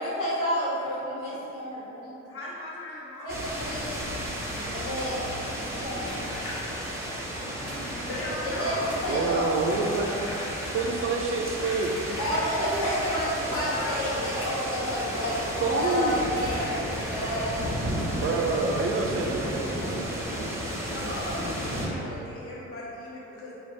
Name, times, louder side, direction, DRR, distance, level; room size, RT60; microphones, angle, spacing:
voice 1, 0.0-2.2 3.2-4.0 4.7-5.3 5.6-6.0 8.6-10.2 12.2-17.6, equal, 85° left, -9 dB, 1.5 m, -30 dB
voice 2, 2.2-3.5 6.5-6.9 7.5-7.7 8.0-8.9 11.5-12.9 13.5-14.6 20.2-23.6, left 1 dB, 45° left, -6 dB, 1.1 m, -39 dB
sound 1, 3.3-21.9, equal, 10° right, 0.7 m, -33 dB
sound 2, 5.9-17.7 19.2-19.3 19.6-19.7 20.1-20.2, equal, 15° left, 1.4 m, -43 dB
voice 3, 9.1-10.1 10.7-11.9 15.6-16.3 18.1-21.1, right 4 dB, 45° right, 1 dB, 0.4 m, -28 dB
4.4 x 2.5 x 3.2 m, 2.9 s
cardioid pair, 90°, 30 cm